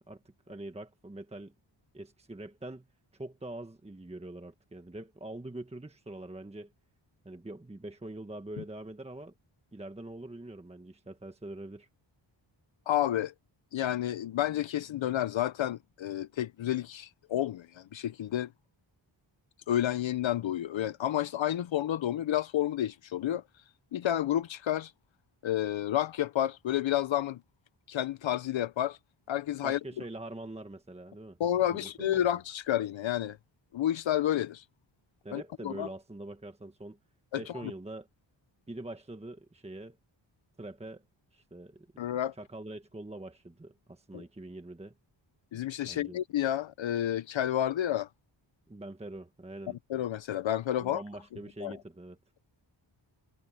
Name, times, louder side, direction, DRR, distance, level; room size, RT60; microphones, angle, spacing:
voice 1, 0.5-1.5 1.9-2.9 3.1-6.7 7.2-9.3 9.7-11.9 29.6-31.4 31.6-32.3 35.2-37.0 37.4-38.1 38.7-40.0 40.6-41.0 41.3-42.0 42.3-44.9 45.8-46.2 48.7-49.8 50.8-52.2, right 2 dB, 15° right, 1.4 m, -44 dB
voice 2, 12.9-13.3 13.7-18.5 19.7-23.4 23.9-24.9 25.4-27.4 27.9-29.0 29.3-29.8 31.4-33.4 33.7-34.6 35.3-35.9 37.3-37.4 42.0-42.3 44.1-44.2 45.5-48.1 49.9-51.0 51.6-51.8, left 11 dB, 75° left, 0.7 m, -30 dB
wide cardioid pair, 120°, 47 cm